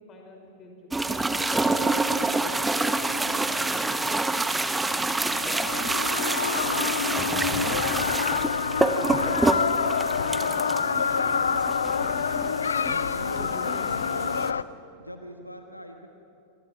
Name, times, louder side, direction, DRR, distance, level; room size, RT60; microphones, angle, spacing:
voice 1, 0.0-6.2 6.7-7.0 7.2-11.6 12.0-13.1 13.4-14.2, left 2 dB, 25° left, 2 dB, 5.4 m, -47 dB
sound 1, 0.9-14.5, right 2 dB, 10° right, 1.1 m, -27 dB
voice 2, 3.2-3.8 12.2-14.4 15.0-16.1, equal, 90° left, 5 dB, 1.4 m, -42 dB
sound 2, 5.2-14.6, left 6 dB, 70° left, 0.5 m, -27 dB
sound 3, 5.8-12.2, right 7 dB, 55° right, 1.2 m, -44 dB
28.5 x 24.5 x 5.7 m, 2.9 s
figure-of-eight pair, 90°, 0 cm